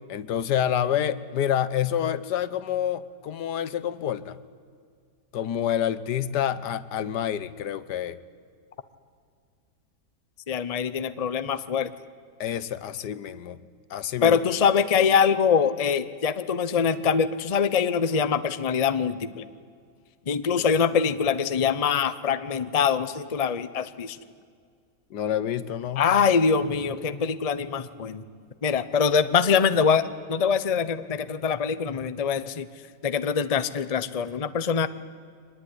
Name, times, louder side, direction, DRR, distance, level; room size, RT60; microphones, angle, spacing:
voice 1, 0.1-4.4 5.3-8.2 12.4-13.6 13.9-14.4 25.1-26.1, left 10 dB, 75° left, 16 dB, 1.5 m, -28 dB
voice 2, 10.5-11.9 14.2-19.5 20.3-24.2 26.0-28.2 28.6-32.7 33.0-34.9, left 6 dB, 30° left, 13 dB, 0.7 m, -24 dB
24.0 x 20.0 x 9.9 m, 2.1 s
omnidirectional pair, 1.8 m